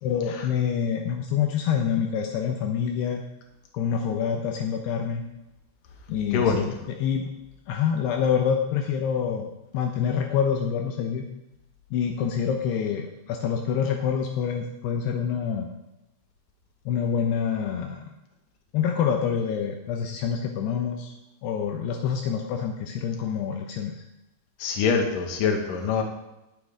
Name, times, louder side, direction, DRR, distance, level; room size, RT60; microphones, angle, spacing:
voice 1, 0.0-3.2 3.7-5.2 6.1-6.7 7.0-7.3 7.7-11.2 11.9-15.7 16.9-18.0 18.7-21.1 21.4-24.0, left 7 dB, 80° left, 3 dB, 3.0 m, -26 dB
voice 2, 6.3-6.6 24.6-26.0, left 5 dB, 60° left, 2 dB, 3.1 m, -24 dB
19.0 x 9.6 x 3.7 m, 0.95 s
omnidirectional pair, 4.9 m